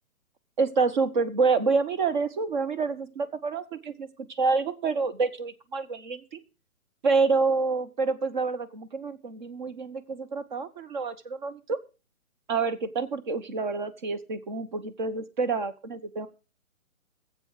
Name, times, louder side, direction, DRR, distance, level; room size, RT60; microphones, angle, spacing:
voice 1, 0.6-6.4 7.0-11.8 12.5-16.3, right 4 dB, 35° right, 11 dB, 1.0 m, -27 dB
18.5 x 7.7 x 4.9 m, 0.33 s
figure-of-eight pair, 145°, 43 cm